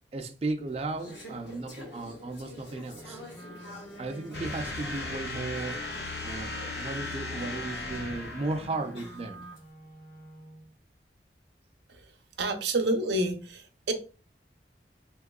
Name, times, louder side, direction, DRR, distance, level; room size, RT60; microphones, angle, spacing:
voice 1, 0.1-3.2 4.0-5.8 6.2-9.5, right 2 dB, 35° right, 0.3 m, -35 dB
Conversation / Chatter, 0.7-9.6, left 1 dB, 80° left, 1.4 m, -48 dB
Wind instrument woodwind instrument, 2.8-10.7, left 1 dB, 25° left, 0.9 m, -49 dB
sound 1, 4.3-9.0, left 2 dB, 65° left, 0.6 m, -37 dB
voice 2, 12.4-13.9, right 1 dB, 80° right, 0.6 m, -28 dB
3.6 x 2.9 x 2.2 m
head